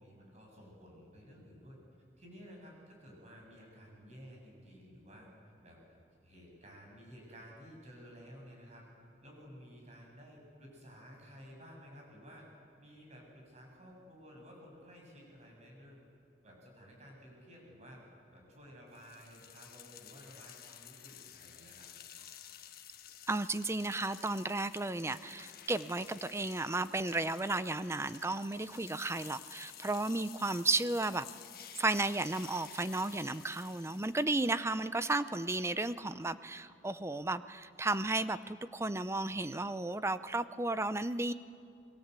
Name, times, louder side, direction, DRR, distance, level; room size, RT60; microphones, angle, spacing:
voice 1, 0.0-1.8 2.2-5.3 5.6-6.0 6.2-8.8 9.2-12.5 12.8-16.1 16.4-18.0 18.3-21.9, equal, 40° right, 0 dB, 8.0 m, -54 dB
sound 1, 18.9-34.2, left 11 dB, 60° left, 1.4 m, -52 dB
voice 2, 23.3-31.3 31.8-41.3, right 2 dB, 15° right, 13 dB, 0.6 m, -34 dB
28.5 x 22.0 x 8.3 m, 2.5 s
head